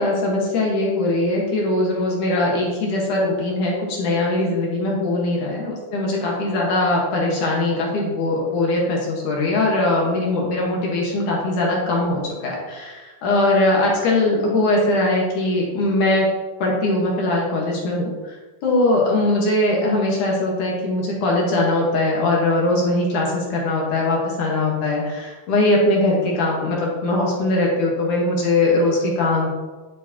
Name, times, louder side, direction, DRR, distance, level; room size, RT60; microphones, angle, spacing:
voice 1, 0.0-16.3 16.6-18.4 18.6-29.5, left 2 dB, 60° left, -3 dB, 2.8 m, -21 dB
11.0 x 8.3 x 3.0 m, 1.3 s
omnidirectional pair, 4.3 m